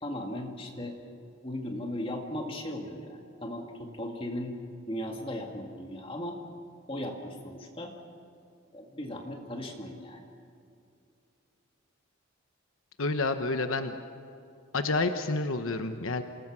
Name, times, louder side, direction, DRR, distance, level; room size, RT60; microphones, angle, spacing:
voice 1, 0.0-1.0 1.4-4.6 4.9-6.4 6.9-7.9 8.7-10.2, left 1 dB, 25° left, 2 dB, 2.1 m, -37 dB
voice 2, 13.0-13.9 14.7-16.2, left 3 dB, 75° left, 7 dB, 1.1 m, -29 dB
28.0 x 19.5 x 6.2 m, 2.5 s
head